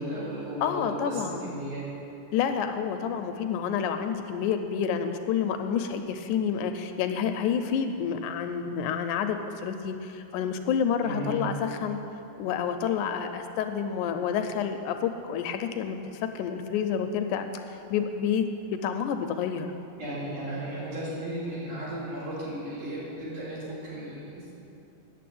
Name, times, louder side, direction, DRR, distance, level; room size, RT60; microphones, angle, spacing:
voice 1, 0.0-1.8 11.0-11.4 20.0-24.6, right 1 dB, 75° right, -8 dB, 4.6 m, -35 dB
voice 2, 0.6-1.5 2.3-12.0 12.4-16.0 16.4-17.5 17.9-19.7, left 7 dB, 80° left, 7 dB, 1.9 m, -29 dB
9.2 x 7.3 x 8.5 m, 2.9 s
omnidirectional pair, 3.7 m